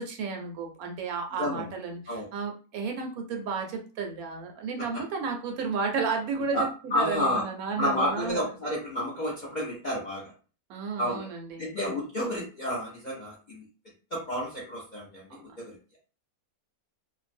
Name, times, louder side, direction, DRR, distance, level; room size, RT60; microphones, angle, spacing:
voice 1, 0.0-8.5 10.7-11.7 15.3-15.4, right 5 dB, 75° right, 3 dB, 1.0 m, -33 dB
voice 2, 6.5-7.4 7.8-10.3 11.0-11.3 11.6-13.6 14.1-15.8, left 1 dB, 50° left, -5 dB, 0.5 m, -30 dB
2.6 x 2.1 x 2.5 m, 0.36 s
omnidirectional pair, 1.6 m